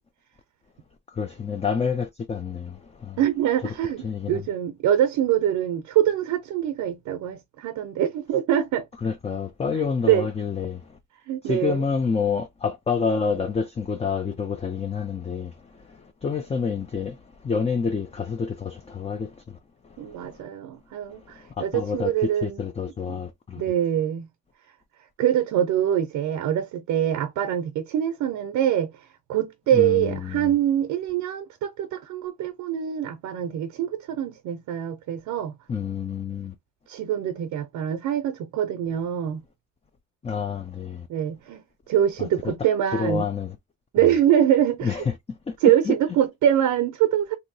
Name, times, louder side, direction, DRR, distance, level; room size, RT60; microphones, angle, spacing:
voice 1, 1.2-2.7 4.0-4.4 9.0-10.8 11.5-15.5 16.2-17.1 17.5-19.3 21.6-23.3 29.7-30.5 35.7-36.5 40.2-41.0 42.4-42.5 42.9-43.5 44.8-45.1 45.6-45.9, left 5 dB, 20° left, 0.4 m, -27 dB
voice 2, 3.2-8.9 10.0-10.3 11.3-11.8 20.0-22.6 23.6-24.3 25.2-28.9 29.3-35.5 36.9-39.4 41.1-41.6 41.9-43.3 43.9-45.0 45.6-47.3, right 10 dB, 85° right, 0.6 m, -24 dB
3.0 x 2.6 x 2.6 m
cardioid pair, 90°, 30 cm